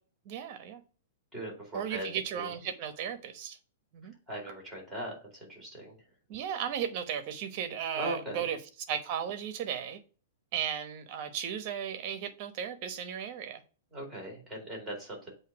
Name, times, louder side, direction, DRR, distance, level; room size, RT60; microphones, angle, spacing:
voice 1, 0.2-0.8 1.7-3.6 3.9-4.1 6.3-8.6 8.9-10.0 10.5-13.6, right 8 dB, 35° right, 1.0 m, -35 dB
voice 2, 1.3-2.1 2.3-2.5 4.3-6.0 8.0-8.5 13.9-15.3, right 1 dB, ahead, 2.4 m, -39 dB
8.0 x 2.8 x 5.9 m
hypercardioid pair, 165°, 0 cm